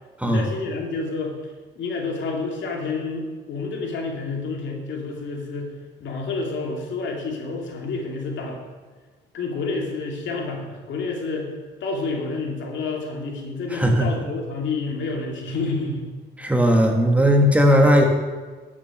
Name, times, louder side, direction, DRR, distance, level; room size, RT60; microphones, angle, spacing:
voice 1, 0.2-1.3 1.7-5.7 6.0-8.6 9.3-11.5 11.8-16.1, left 3 dB, 70° left, 1 dB, 2.6 m, -29 dB
voice 2, 13.7-14.1 16.4-18.0, equal, 5° right, 2 dB, 1.8 m, -17 dB
12.0 x 7.4 x 6.6 m, 1.4 s
cardioid pair, 90°, 20 cm